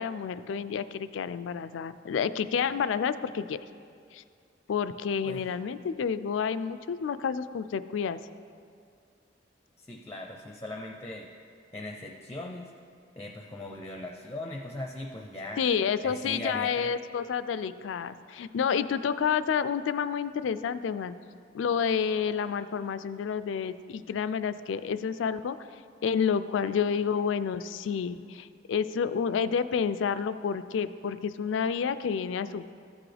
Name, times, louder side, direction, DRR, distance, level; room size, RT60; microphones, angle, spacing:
voice 1, 0.0-3.6 4.1-4.2 4.7-8.2 15.6-21.1 21.5-25.6 26.0-32.7, left 6 dB, 85° left, 13 dB, 0.3 m, -29 dB
voice 2, 9.8-11.3 11.7-12.7 13.2-15.6 16.0-16.9, left 1 dB, 15° left, 1 dB, 0.5 m, -39 dB
14.0 x 6.1 x 3.3 m, 2.3 s
head